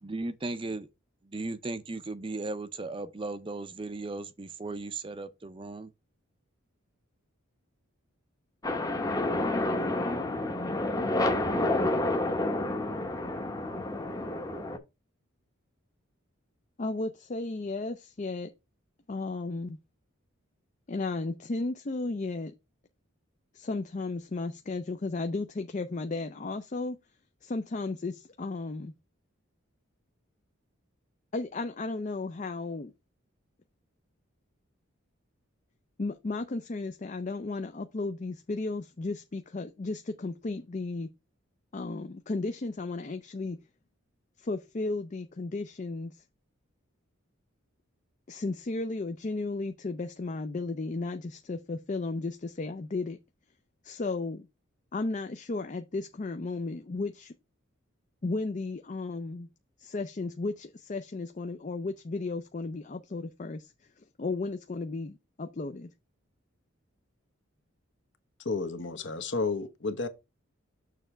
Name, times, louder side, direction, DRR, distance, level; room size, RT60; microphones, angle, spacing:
voice 1, 0.0-0.9 1.2-5.9, right 2 dB, 25° right, 0.5 m, -36 dB
sound 1, 8.6-14.8, left 2 dB, 15° left, 0.8 m, -29 dB
voice 2, 16.8-18.5 19.1-19.8 20.9-22.5 23.5-27.0 27.4-28.9 31.3-32.9 36.0-41.1 41.7-43.6 44.4-46.2 48.3-53.2 53.8-54.5 54.9-57.3 58.2-59.5 59.8-63.7 64.0-65.9, left 3 dB, 35° left, 0.5 m, -34 dB
voice 3, 68.4-70.1, left 3 dB, 60° left, 1.1 m, -31 dB
6.6 x 3.3 x 6.0 m
head